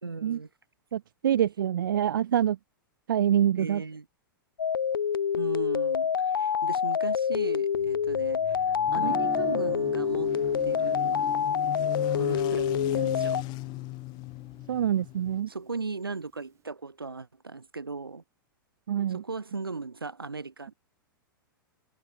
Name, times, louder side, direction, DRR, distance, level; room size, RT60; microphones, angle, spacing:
voice 1, 0.0-0.5 3.6-4.0 5.4-10.3 10.6-11.3 12.1-13.5 15.5-18.2 19.1-20.7, right 4 dB, 85° right, 4.8 m, -37 dB
voice 2, 0.9-2.6 3.1-3.8 14.7-15.5 18.9-19.2, right 10 dB, 65° right, 1.8 m, -25 dB
sound 1, 4.6-13.4, left 7 dB, 80° left, 0.5 m, -27 dB
sound 2, 7.8-15.4, left 22 dB, 40° left, 2.8 m, -38 dB
Guitar, 8.9-14.9, right 10 dB, 25° right, 1.2 m, -42 dB
figure-of-eight pair, 100°, 12 cm